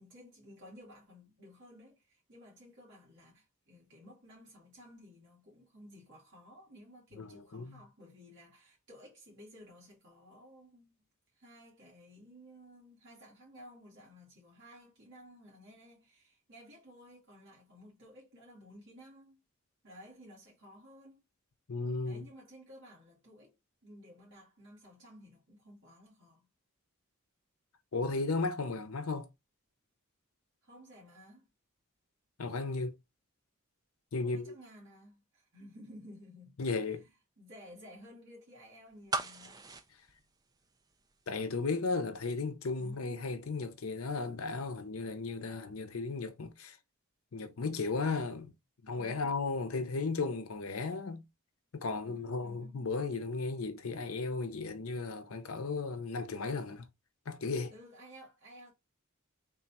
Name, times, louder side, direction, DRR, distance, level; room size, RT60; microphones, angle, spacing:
voice 1, 0.0-11.0 11.4-19.4 19.8-21.2 22.0-23.5 23.8-26.5 30.6-31.5 34.2-37.1 37.4-39.6 42.7-43.2 48.9-49.4 52.0-52.9 57.7-58.7, equal, 55° right, 1.9 m, -55 dB
voice 2, 7.1-7.8 21.7-22.2 27.9-29.3 32.4-33.0 34.1-34.5 36.6-37.0 41.3-46.8 47.3-48.5 48.8-51.2 51.7-56.9 57.3-57.7, left 3 dB, 75° left, 0.7 m, -35 dB
sound 1, 39.1-41.1 41.4-41.5, right 3 dB, 15° right, 0.3 m, -38 dB
3.8 x 2.3 x 4.0 m
head